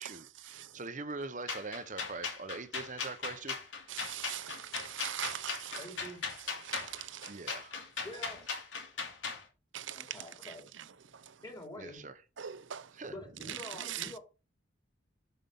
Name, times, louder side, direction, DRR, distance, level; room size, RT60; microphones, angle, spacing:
voice 1, 0.0-3.6 5.2-5.4 7.3-7.7 11.8-12.2 12.9-13.1, right 3 dB, 40° right, 0.9 m, -42 dB
sound 1, 1.5-9.4, left 5 dB, 80° left, 2.9 m, -38 dB
voice 2, 3.9-5.8 6.6-7.4 9.7-10.2 10.4-10.5 11.1-11.3 12.4-12.9 13.5-14.1, right 10 dB, 75° right, 0.6 m, -41 dB
voice 3, 5.8-6.2 8.0-8.4 9.9-10.7 11.4-12.0 13.1-14.2, left 1 dB, 20° left, 3.1 m, -46 dB
7.6 x 5.7 x 5.5 m
head